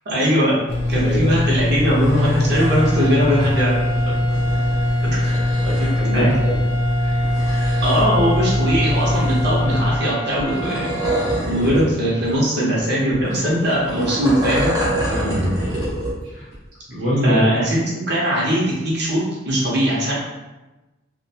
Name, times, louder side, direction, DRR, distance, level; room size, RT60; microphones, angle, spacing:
voice 1, 0.1-0.6 0.9-3.8 5.0-5.3 6.1-6.3 7.8-11.0 11.5-14.8 17.2-20.1, equal, 55° right, -5 dB, 0.7 m, -20 dB
sound 1, 0.7-10.0, left 1 dB, 30° left, 0.4 m, -21 dB
voice 2, 1.0-1.4 3.4-3.5 4.1-4.4 5.2-5.3 5.6-6.6 7.0-7.2 11.7-11.9 12.3-12.4 13.3-13.4 15.1-15.5 16.3-16.5 16.9-17.5, equal, 90° right, -8 dB, 0.8 m, -24 dB
sound 2, 1.8-2.9 4.1-6.0 7.1-8.3 8.7-9.6 10.4-11.9 12.2-12.3 13.1-16.2 16.5-16.6, right 1 dB, 15° right, 0.7 m, -27 dB
sound 3, 2.4-11.4, right 3 dB, 70° left, 0.7 m, -31 dB
2.5 x 2.2 x 2.7 m, 1.1 s
head